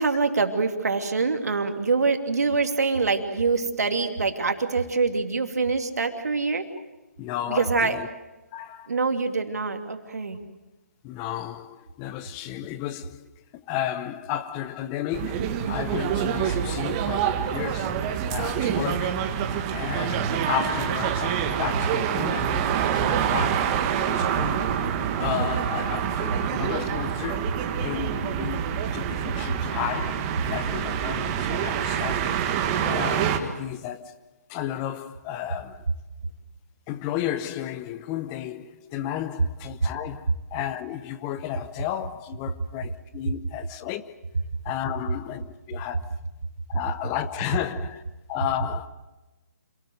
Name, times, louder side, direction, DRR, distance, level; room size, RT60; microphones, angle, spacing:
voice 1, 0.0-6.7 7.5-8.0 8.9-10.4 39.8-39.9, right 4 dB, 75° right, 2.7 m, -25 dB
voice 2, 7.2-8.1 8.5-8.9 11.0-18.0 18.3-19.3 19.7-24.6 25.1-32.4 32.8-34.2 34.5-35.9 36.9-44.2 44.6-46.2 46.7-48.0 48.3-48.9, left 11 dB, 20° left, 0.8 m, -33 dB
sound 1, 15.1-33.4, right 8 dB, 25° right, 1.7 m, -26 dB
27.0 x 19.0 x 7.9 m
hypercardioid pair, 150°, 9 cm